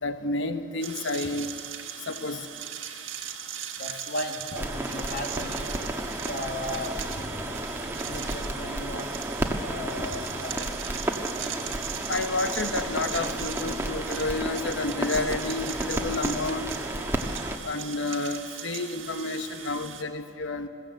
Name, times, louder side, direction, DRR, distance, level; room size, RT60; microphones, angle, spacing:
voice 1, 0.0-1.5 2.1-2.5 12.1-16.7 17.6-20.7, left 3 dB, 70° left, 8 dB, 1.1 m, -30 dB
sound 1, 0.8-20.0, right 9 dB, 85° right, 1.6 m, -39 dB
voice 2, 3.8-5.7 6.2-7.5 8.0-9.1 9.5-10.7 16.0-16.1, left 1 dB, 55° left, 3 dB, 1.9 m, -36 dB
sound 2, 4.6-17.6, right 1 dB, 15° right, 1.3 m, -32 dB
21.5 x 16.0 x 7.8 m, 2.4 s
head